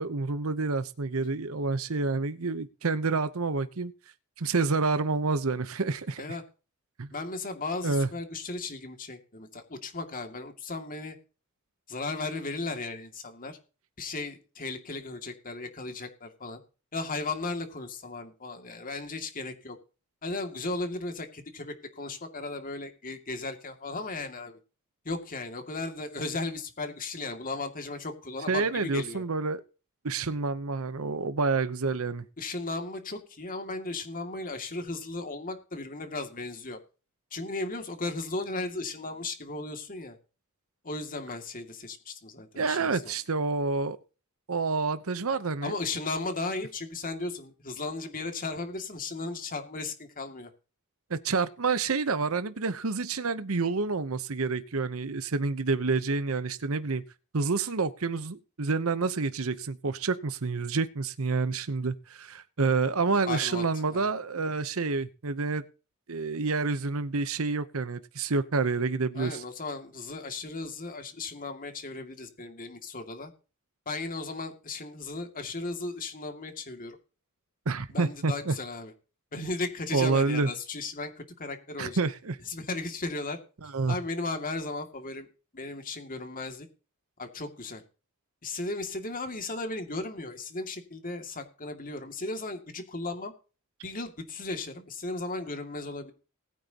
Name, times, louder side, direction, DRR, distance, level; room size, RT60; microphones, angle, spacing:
voice 1, 0.0-3.9 4.4-6.4 7.0-7.1 7.8-8.1 28.5-29.6 30.0-32.2 42.6-44.0 44.5-45.7 51.1-57.0 57.3-65.6 66.1-69.4 77.7-78.5 79.4-79.5 79.9-80.5 81.8-82.4 83.6-84.0, right 4 dB, 70° right, 0.9 m, -28 dB
voice 2, 7.1-11.2 11.9-13.6 14.0-16.6 16.9-19.8 20.2-24.6 25.0-29.2 32.4-36.8 37.3-40.2 40.8-43.2 45.6-50.5 63.3-63.6 63.9-64.0 69.1-73.3 73.9-77.0 77.9-78.9 79.3-82.1 82.5-83.4 83.9-85.3 85.5-86.7 87.2-87.8 88.4-93.3 93.8-96.1, left 3 dB, 40° left, 2.4 m, -36 dB
20.0 x 9.2 x 2.9 m
head